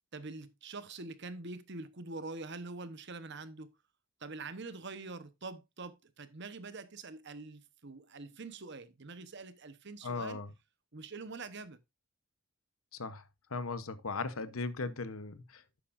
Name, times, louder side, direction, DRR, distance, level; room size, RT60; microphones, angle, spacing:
voice 1, 0.1-3.7 4.2-10.4 10.9-11.8, right 3 dB, 55° right, 1.0 m, -45 dB
voice 2, 10.0-10.5 12.9-13.2 13.5-15.8, left 4 dB, 80° left, 1.0 m, -38 dB
11.5 x 8.4 x 2.6 m
head